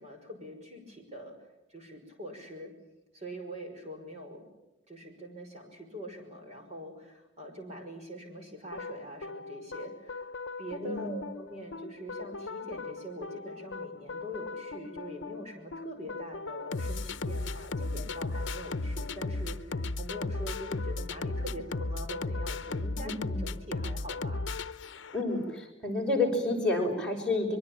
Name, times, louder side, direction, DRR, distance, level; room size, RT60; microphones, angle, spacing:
voice 1, 0.0-1.4 1.7-2.7 3.1-4.5 4.9-10.3 10.6-24.5, equal, 35° right, 3 dB, 5.8 m, -43 dB
sound 1, 8.7-25.4, left 3 dB, 70° left, 0.8 m, -36 dB
voice 2, 10.8-11.2 23.0-23.4 25.1-27.6, left 2 dB, 5° left, -2 dB, 6.1 m, -30 dB
24.0 x 22.5 x 8.9 m, 0.94 s
head